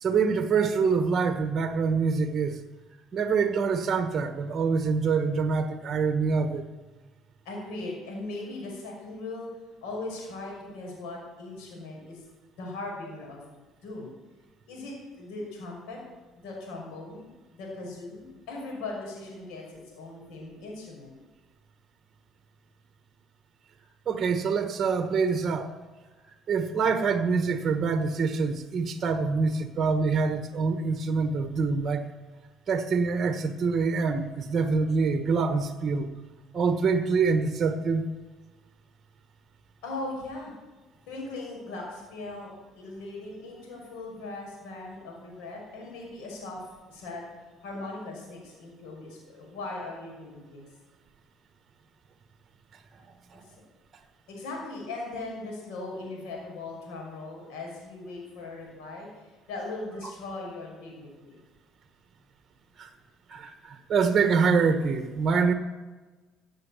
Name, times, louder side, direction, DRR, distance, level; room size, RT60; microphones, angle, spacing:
voice 1, 0.0-2.6 3.1-6.6 24.1-25.7 26.5-32.1 32.7-36.1 36.5-38.0 53.3-53.4 62.8-62.9 63.3-65.5, right 5 dB, 40° right, 8 dB, 1.3 m, -25 dB
voice 2, 7.4-9.5 9.8-12.2 12.6-13.4 13.8-14.1 14.7-16.0 16.4-21.2 39.8-40.5 41.1-46.6 46.9-47.3 47.6-50.7 53.4-53.5 54.3-61.4, left 2 dB, 85° left, -1 dB, 5.9 m, -39 dB
16.5 x 7.7 x 7.3 m, 1.3 s
cardioid pair, 100°, 0 cm